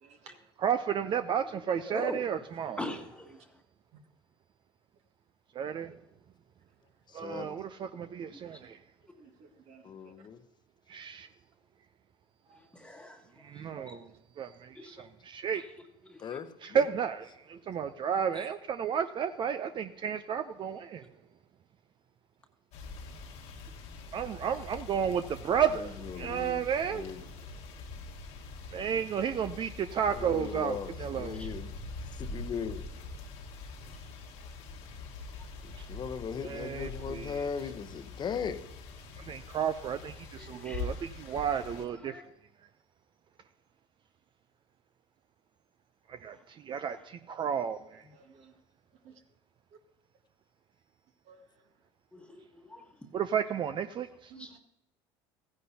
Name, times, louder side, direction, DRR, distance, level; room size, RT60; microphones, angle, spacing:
voice 1, 0.0-0.4 7.3-7.4 9.2-9.8 13.7-14.0 14.8-14.9 42.1-42.2 48.1-48.5 49.0-49.1 51.3-51.4 54.3-54.5, right 7 dB, 60° right, 1.7 m, -53 dB
voice 2, 0.6-2.8 5.5-6.0 7.1-8.8 10.9-11.3 13.4-14.1 14.4-15.6 16.6-21.0 24.1-27.1 28.7-31.4 35.8-35.9 36.4-37.4 39.2-42.2 46.1-48.0 53.1-54.3, right 8 dB, 40° right, 0.5 m, -32 dB
voice 3, 2.8-3.3 12.7-13.2 13.9-14.0 14.8-14.9 40.4-40.8 42.0-42.2 52.1-52.4 52.7-52.8 54.3-54.5, left 1 dB, 10° left, 1.4 m, -40 dB
voice 4, 7.1-7.7 9.8-10.4 16.2-16.8 25.8-26.7 26.9-27.2 30.1-31.7 32.2-32.9 35.9-38.7, left 6 dB, 35° left, 0.9 m, -38 dB
sound 1, 22.7-41.9, left 3 dB, 65° left, 1.5 m, -44 dB
15.0 x 9.7 x 2.8 m
supercardioid pair, 85°, 12 cm